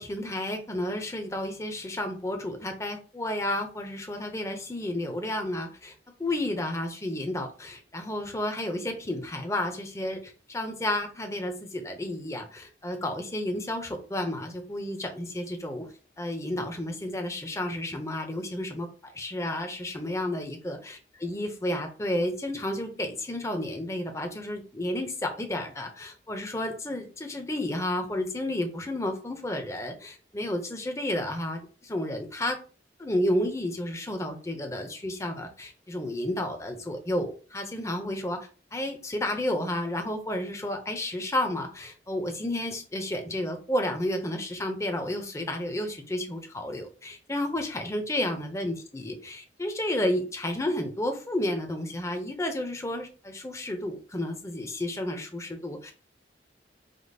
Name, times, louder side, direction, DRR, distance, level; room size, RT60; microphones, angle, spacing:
voice 1, 0.0-5.9 6.2-15.9 16.2-20.8 21.2-32.6 33.0-55.9, left 1 dB, 15° left, 4 dB, 0.7 m, -31 dB
5.2 x 2.0 x 4.0 m, 0.37 s
head